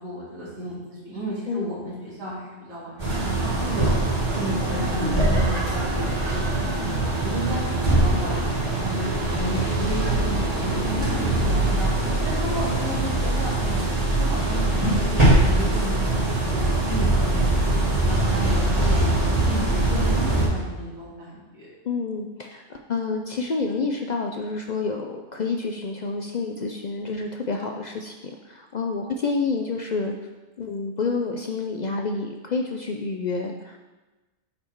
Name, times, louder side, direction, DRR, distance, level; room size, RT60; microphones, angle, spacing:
voice 1, 0.0-4.0 4.4-6.9 7.2-11.9 12.2-19.0 19.5-21.7, right 1 dB, 60° right, -8 dB, 2.4 m, -33 dB
sound 1, 3.0-20.4, right 2 dB, 30° right, 2.1 m, -22 dB
voice 2, 21.8-30.1 30.6-33.8, left 4 dB, 60° left, 3 dB, 0.4 m, -28 dB
8.5 x 4.2 x 4.5 m, 1.2 s
omnidirectional pair, 1.3 m